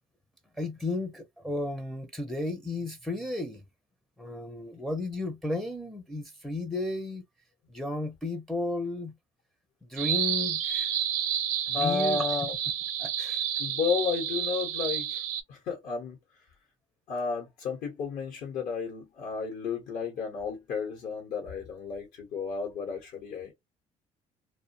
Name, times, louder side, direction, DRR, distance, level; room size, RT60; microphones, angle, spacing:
voice 1, 0.6-3.6 4.2-7.2 7.7-9.1 9.9-10.9 11.7-12.2 13.0-13.4, left 2 dB, ahead, 0.5 m, -33 dB
sound 1, 10.0-15.4, right 9 dB, 60° right, 0.5 m, -30 dB
voice 2, 11.7-12.5 13.6-15.2 15.5-16.2 17.1-23.5, left 5 dB, 65° left, 1.0 m, -32 dB
2.2 x 2.2 x 2.6 m
supercardioid pair, 90°, 15 cm